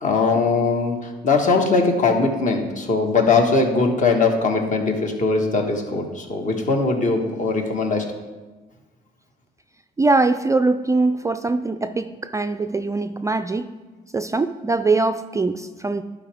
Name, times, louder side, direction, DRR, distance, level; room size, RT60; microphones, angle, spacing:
voice 1, 0.0-8.0, left 3 dB, 45° left, 3 dB, 1.5 m, -20 dB
voice 2, 10.0-13.7 14.1-16.0, right 3 dB, 20° right, 10 dB, 0.3 m, -22 dB
11.5 x 5.2 x 3.5 m, 1.2 s
cardioid pair, 80°, 17 cm